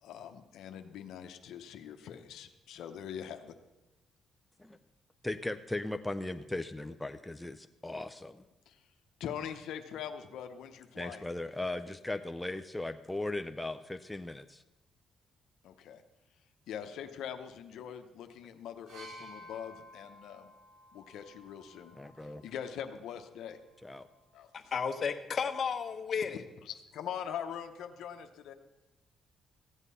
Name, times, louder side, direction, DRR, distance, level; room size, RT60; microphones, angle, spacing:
voice 1, 0.0-3.5 8.7-8.8 9.2-11.2 15.6-16.0 16.7-20.5 20.9-22.0 22.4-23.6 24.3-24.5 26.2-26.4 27.0-28.5, left 8 dB, 80° left, 6 dB, 0.9 m, -42 dB
voice 2, 5.2-8.4 11.0-14.6 22.0-22.4 23.8-24.1, left 2 dB, 10° left, 7 dB, 0.5 m, -38 dB
sound 1, 18.9-22.7 23.7-23.9, equal, 75° right, 5.4 m, -53 dB
voice 3, 24.7-26.4, left 6 dB, 45° left, 7 dB, 1.1 m, -32 dB
15.0 x 8.2 x 5.5 m, 1.0 s
cardioid pair, 90°, 0 cm